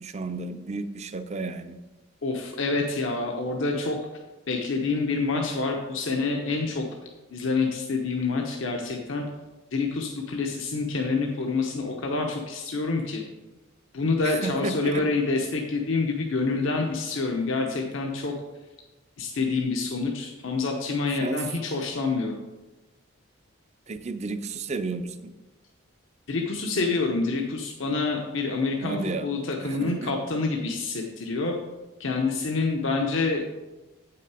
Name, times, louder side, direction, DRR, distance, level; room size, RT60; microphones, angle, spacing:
voice 1, 0.0-1.8 14.2-15.0 21.2-21.4 23.9-25.3 28.8-29.3 29.6-30.1, right 3 dB, 35° right, 10 dB, 0.4 m, -32 dB
voice 2, 2.2-4.0 4.5-6.8 7.3-9.3 9.7-13.2 13.9-18.3 19.2-22.4 26.3-31.5 32.0-33.6, left 3 dB, 70° left, 1 dB, 0.8 m, -27 dB
8.1 x 5.8 x 4.7 m, 1.1 s
head